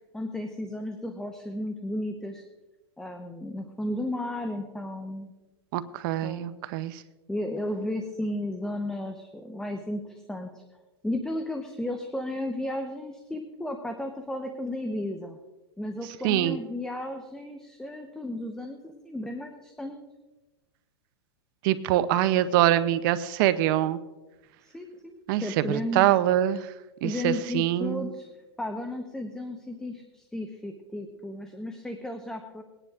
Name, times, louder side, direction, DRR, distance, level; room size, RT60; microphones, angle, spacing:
voice 1, 0.1-2.4 3.0-5.3 6.2-6.5 7.3-10.6 11.0-15.4 15.8-20.0 24.6-26.1 27.0-28.3 28.6-32.6, left 1 dB, 5° left, 5 dB, 0.9 m, -34 dB
voice 2, 5.7-7.0 16.2-16.6 21.6-24.0 25.3-26.7 27.0-28.1, right 13 dB, 50° right, 14 dB, 0.6 m, -24 dB
21.0 x 9.9 x 2.5 m, 1.1 s
hypercardioid pair, 125°, 14 cm